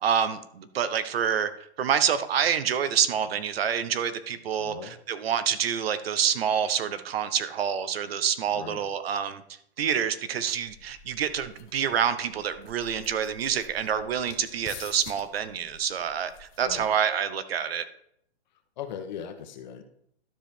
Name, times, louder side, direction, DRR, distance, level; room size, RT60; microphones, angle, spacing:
voice 1, 0.0-1.5 1.8-9.4 9.8-17.8, right 8 dB, 65° right, 12 dB, 0.9 m, -27 dB
voice 2, 4.6-4.9 8.5-8.8 16.6-16.9 18.8-19.8, left 8 dB, 45° left, 8 dB, 1.1 m, -39 dB
sound 1, 10.5-17.1, left 8 dB, 20° left, 0.8 m, -49 dB
12.5 x 5.1 x 4.4 m, 0.71 s
hypercardioid pair, 155°, 32 cm